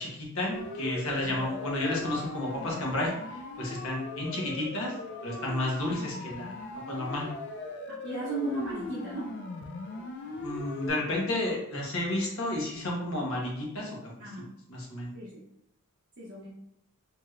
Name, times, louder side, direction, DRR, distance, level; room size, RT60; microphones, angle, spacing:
voice 1, 0.0-4.9 5.2-7.3 10.4-14.1 14.7-15.1, left 1 dB, 70° left, -2 dB, 0.9 m, -32 dB
Siren, 0.5-10.9, left 2 dB, 50° left, 0.4 m, -40 dB
voice 2, 7.9-9.3 14.2-14.5 15.1-15.4 16.2-16.5, right 2 dB, 55° right, -5 dB, 0.6 m, -36 dB
3.1 x 2.9 x 2.4 m, 0.80 s
head